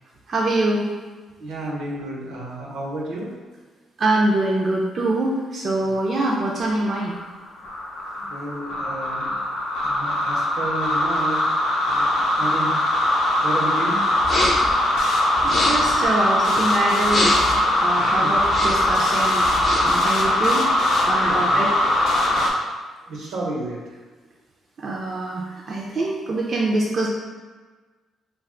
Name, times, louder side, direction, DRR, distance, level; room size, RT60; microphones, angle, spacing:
voice 1, 0.3-0.9 4.0-7.2 15.4-17.4 17.8-19.5 19.8-20.7 21.1-21.7 24.8-27.1, right 2 dB, 45° right, -3 dB, 0.4 m, -24 dB
voice 2, 1.4-3.4 5.8-5.9 8.2-9.4 9.8-11.5 11.8-14.2 17.9-18.4 21.2-21.6 23.0-24.0, right 2 dB, 85° right, -3 dB, 0.7 m, -32 dB
sound 1, 6.6-22.5, left 1 dB, 80° left, 0.5 m, -21 dB
sound 2, 14.2-14.7 15.4-16.0 17.0-17.6 18.4-18.9 19.4-20.0, left 1 dB, 40° left, 0.8 m, -24 dB
2.4 x 2.2 x 3.6 m, 1.3 s
cardioid pair, 90°, 0 cm